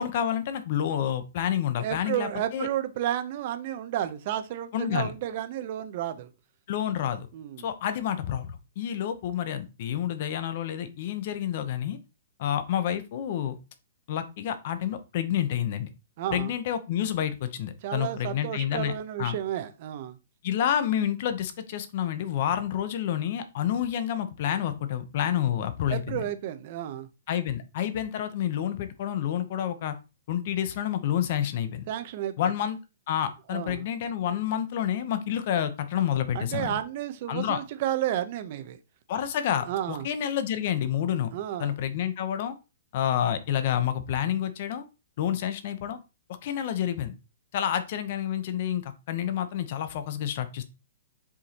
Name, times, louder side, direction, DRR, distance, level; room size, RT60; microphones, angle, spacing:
voice 1, 0.0-2.7 4.7-5.1 6.7-7.3 7.6-12.0 12.4-13.6 14.1-15.9 16.3-18.9 19.2-19.4 20.4-26.2 27.3-29.9 30.3-31.9 32.4-32.8 33.1-36.8 37.3-37.6 39.1-41.3 41.6-42.5 42.9-44.8 45.2-46.0 46.4-47.1 47.5-50.6, left 10 dB, 40° left, 0.8 m, -29 dB
voice 2, 1.8-6.3 7.3-7.7 16.2-16.5 17.8-20.2 25.9-27.1 31.9-32.3 33.5-33.8 36.3-38.8 39.7-40.1 41.3-41.7, right 11 dB, 40° right, 0.7 m, -32 dB
6.6 x 5.1 x 2.9 m
hypercardioid pair, 165°, 0 cm